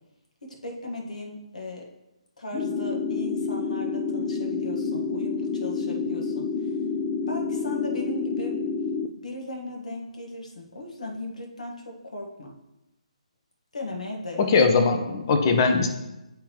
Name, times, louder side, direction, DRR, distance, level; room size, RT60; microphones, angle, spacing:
voice 1, 0.4-1.9 2.4-6.7 7.3-8.6 9.2-12.5 13.7-14.5, left 1 dB, 80° left, 1 dB, 1.4 m, -37 dB
sound 1, 2.5-9.1, left 4 dB, 20° left, 0.4 m, -28 dB
voice 2, 14.4-15.9, left 4 dB, 40° left, 5 dB, 0.8 m, -20 dB
10.0 x 3.7 x 2.9 m, 0.95 s
hypercardioid pair, 150°, 4 cm